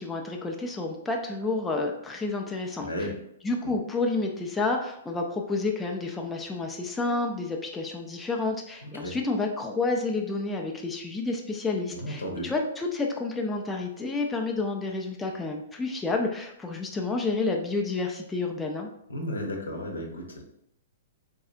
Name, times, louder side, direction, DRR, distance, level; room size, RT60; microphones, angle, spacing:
voice 1, 0.0-3.1 3.4-18.9, left 3 dB, 10° left, 1 dB, 0.4 m, -30 dB
voice 2, 2.8-3.2 9.0-9.2 11.9-12.5 19.1-20.4, left 1 dB, 75° left, 1 dB, 0.8 m, -33 dB
3.9 x 2.7 x 2.4 m, 0.75 s
figure-of-eight pair, 110°, 0 cm